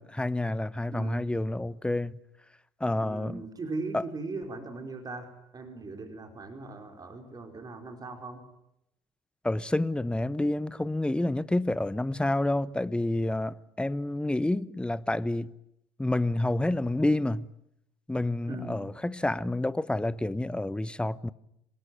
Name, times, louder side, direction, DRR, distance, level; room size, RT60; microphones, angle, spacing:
voice 1, 0.0-2.2 2.8-3.4 3.9-4.0 9.4-15.5 16.0-17.5 18.1-21.3, left 1 dB, 5° left, 1.0 m, -29 dB
voice 2, 3.0-8.5 18.5-18.8, right 3 dB, 30° right, 4.8 m, -39 dB
26.0 x 19.0 x 9.5 m
hypercardioid pair, 70°, 13 cm